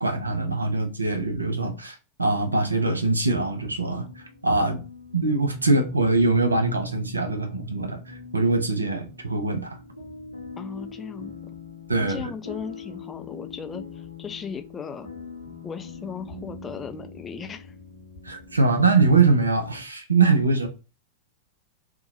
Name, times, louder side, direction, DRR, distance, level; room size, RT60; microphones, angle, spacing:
voice 1, 0.0-4.8 5.1-9.8 11.9-12.2 18.2-20.7, right 3 dB, 80° right, 0.5 m, -23 dB
sound 1, 3.9-19.8, left 3 dB, 85° left, 0.8 m, -42 dB
voice 2, 10.6-11.4 12.0-15.1 15.6-17.8, left 6 dB, 20° left, 0.3 m, -37 dB
2.7 x 2.2 x 2.5 m
figure-of-eight pair, 90°, 0 cm